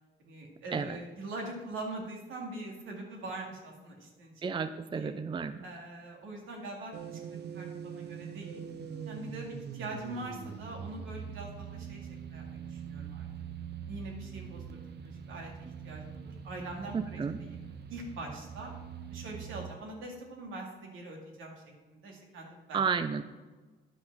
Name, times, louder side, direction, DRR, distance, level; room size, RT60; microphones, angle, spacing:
voice 1, 0.2-4.3 4.9-5.1 5.6-8.6 9.0-13.3 13.9-18.7 19.1-21.6 21.9-22.8, right 2 dB, 80° right, 0 dB, 2.3 m, -43 dB
voice 2, 4.4-5.6 16.9-17.4 22.7-23.2, right 5 dB, 25° right, 11 dB, 0.5 m, -32 dB
sound 1, 6.9-19.7, right 7 dB, 55° right, 0.9 m, -43 dB
10.5 x 5.4 x 6.0 m, 1.3 s
cardioid pair, 90°, 20 cm